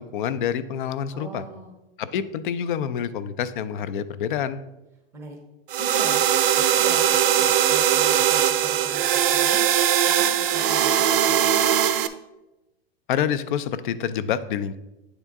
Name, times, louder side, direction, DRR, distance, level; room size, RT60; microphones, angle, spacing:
voice 1, 0.0-1.4 2.0-4.6 13.1-14.7, left 8 dB, 55° left, 14 dB, 0.4 m, -27 dB
voice 2, 1.1-1.7 5.1-5.4 5.7-6.2 6.5-9.6 10.0-11.7, right 2 dB, 10° right, 1 dB, 0.6 m, -39 dB
sound 1, 5.7-12.1, right 10 dB, 55° right, 0.5 m, -20 dB
9.1 x 3.6 x 3.5 m, 0.96 s
supercardioid pair, 170°, 31 cm